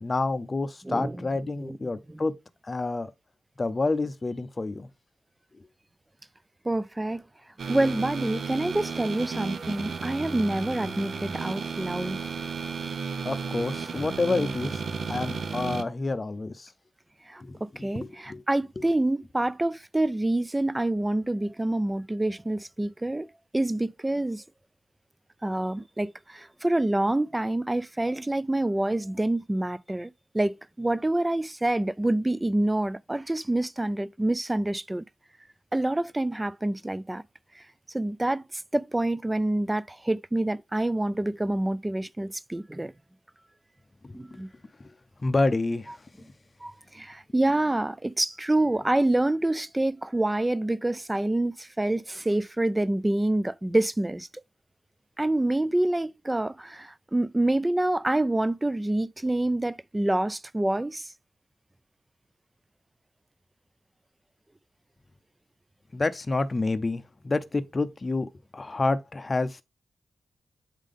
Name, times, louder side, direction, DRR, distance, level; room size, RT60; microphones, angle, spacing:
voice 1, 0.0-2.3 2.6-3.1 3.6-4.9 7.7-7.8 13.2-14.8 15.1-16.7 17.4-18.4 18.8-18.9 44.0-44.4 44.8-44.9 45.2-46.0 65.9-69.6, left 3 dB, 35° left, 0.5 m, -29 dB
voice 2, 0.8-1.3 1.6-1.8 2.1-2.2 6.6-7.2 7.7-12.2 17.3-17.4 17.8-24.4 25.4-35.0 35.7-37.2 37.5-42.9 44.1-44.5 46.6-54.3 55.2-61.1, right 1 dB, 15° right, 0.3 m, -27 dB
sound 1, 7.6-15.8, right 5 dB, 65° right, 0.6 m, -33 dB
7.4 x 3.7 x 3.5 m
cardioid pair, 80°, 0 cm